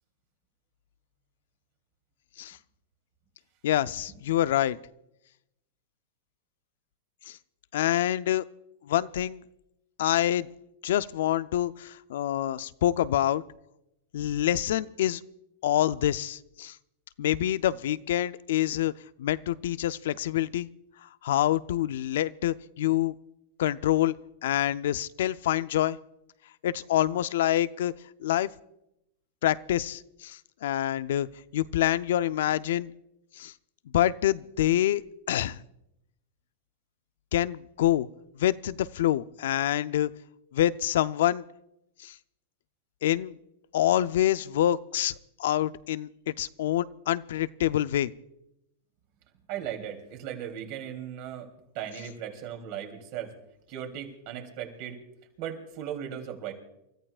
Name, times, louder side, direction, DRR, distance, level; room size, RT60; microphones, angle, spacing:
voice 1, 3.6-4.8 7.3-7.4 7.7-8.4 8.8-9.4 10.0-10.5 10.8-13.4 14.1-15.2 15.6-16.8 17.2-18.9 19.2-20.7 21.0-23.1 23.6-24.1 24.4-26.0 26.6-27.9 28.2-28.5 29.4-31.3 31.5-32.9 33.4-33.5 33.9-35.0 35.3-35.6 37.3-38.1 38.4-40.1 40.5-41.4 42.0-42.2 43.0-43.3 43.7-45.1 45.4-48.1, left 12 dB, 75° left, 15 dB, 0.5 m, -26 dB
voice 2, 49.5-51.5 51.7-53.3 53.7-55.0 55.4-56.5, right 9 dB, 55° right, 4 dB, 3.3 m, -37 dB
29.0 x 14.0 x 2.5 m, 0.86 s
hypercardioid pair, 120°, 0 cm